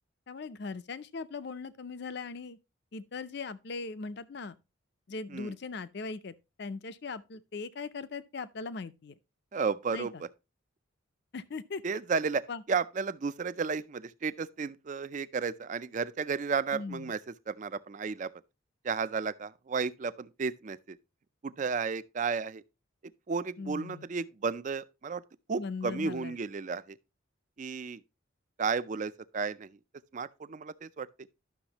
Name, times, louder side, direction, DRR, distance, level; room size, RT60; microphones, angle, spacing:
voice 1, 0.3-2.6 2.9-4.5 5.1-9.1 9.9-10.1 11.3-11.8 12.5-12.6 16.7-17.1 23.6-24.1 25.6-26.4, left 4 dB, 55° left, 0.5 m, -39 dB
voice 2, 9.5-10.3 11.8-12.4 12.7-17.2 17.5-18.3 18.8-21.0 21.4-22.6 23.3-25.2 25.5-27.0 27.6-28.0 28.6-29.8 30.1-31.1, right 5 dB, 35° right, 0.4 m, -33 dB
11.5 x 6.3 x 2.9 m
head